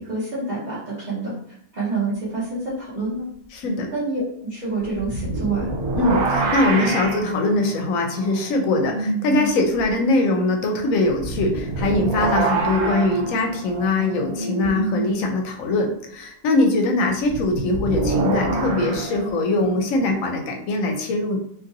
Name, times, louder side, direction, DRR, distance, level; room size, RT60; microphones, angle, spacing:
voice 1, 0.0-1.3 1.7-3.2 3.9-5.7, right 3 dB, 40° right, -9 dB, 0.8 m, -27 dB
voice 2, 3.5-3.9 6.0-21.4, left 2 dB, 70° left, 2 dB, 0.9 m, -22 dB
sound 1, 5.0-9.5 9.8-9.9 11.2-15.2 17.3-20.2, right 2 dB, 85° right, 1.1 m, -26 dB
2.7 x 2.6 x 2.6 m, 0.68 s
omnidirectional pair, 1.5 m